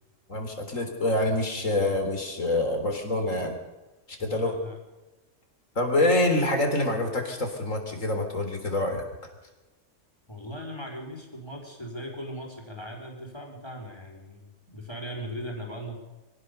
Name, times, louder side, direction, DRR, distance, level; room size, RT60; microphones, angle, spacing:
voice 1, 0.3-3.6 4.1-4.5 5.8-9.0, left 2 dB, 80° left, 5 dB, 4.1 m, -26 dB
voice 2, 4.2-4.7 10.3-14.5 14.7-16.0, equal, 20° left, 1 dB, 4.7 m, -38 dB
24.0 x 16.0 x 6.8 m, 1.1 s
omnidirectional pair, 1.3 m